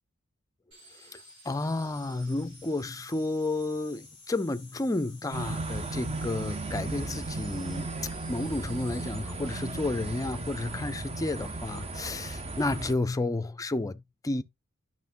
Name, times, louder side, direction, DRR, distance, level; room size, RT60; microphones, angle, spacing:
sound 1, 0.7-9.1, equal, 70° right, 4.8 m, -53 dB
voice 1, 1.5-7.9 8.3-14.4, left 2 dB, 15° left, 0.4 m, -31 dB
sound 2, 5.3-12.9, right 3 dB, 30° right, 0.6 m, -36 dB
9.3 x 6.1 x 2.5 m
head